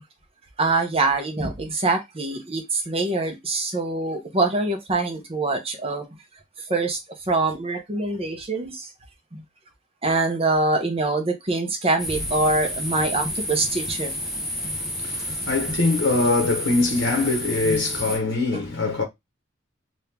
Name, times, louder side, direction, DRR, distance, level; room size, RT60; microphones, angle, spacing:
voice 1, 0.6-6.1 6.7-7.0 7.3-8.9 9.3-9.4 10.0-14.2 14.6-14.7 18.5-18.6, right 2 dB, 30° right, 0.8 m, -24 dB
sound 1, 12.0-18.2, left 1 dB, ahead, 0.9 m, -30 dB
voice 2, 14.6-19.0, left 3 dB, 85° left, 0.9 m, -23 dB
2.9 x 2.7 x 3.4 m
head